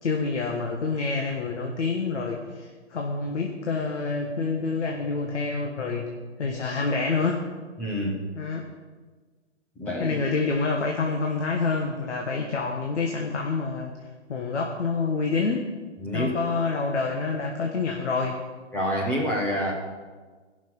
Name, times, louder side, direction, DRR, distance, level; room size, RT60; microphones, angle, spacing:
voice 1, 0.0-6.1 6.4-7.4 8.3-8.6 10.0-13.9 14.3-15.7 16.1-18.4, left 4 dB, 70° left, 1 dB, 1.6 m, -27 dB
voice 2, 7.8-8.2 9.8-10.2 16.0-16.3 18.7-19.7, equal, 5° left, -2 dB, 0.5 m, -27 dB
17.5 x 6.2 x 5.6 m, 1.4 s
hypercardioid pair, 150°, 36 cm